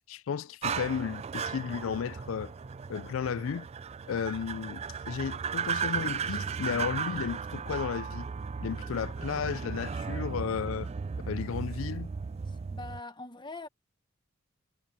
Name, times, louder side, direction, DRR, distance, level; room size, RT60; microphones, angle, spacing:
voice 1, 0.1-2.5 2.9-3.7 4.1-8.3 8.6-10.9 11.3-12.1, left 7 dB, 70° left, 0.4 m, -34 dB
sound 1, 0.6-13.0, right 6 dB, 30° right, 0.3 m, -35 dB
sound 2, 1.7-7.8, equal, 50° right, 5.4 m, -60 dB
voice 2, 12.5-13.7, left 3 dB, 20° left, 1.3 m, -43 dB
head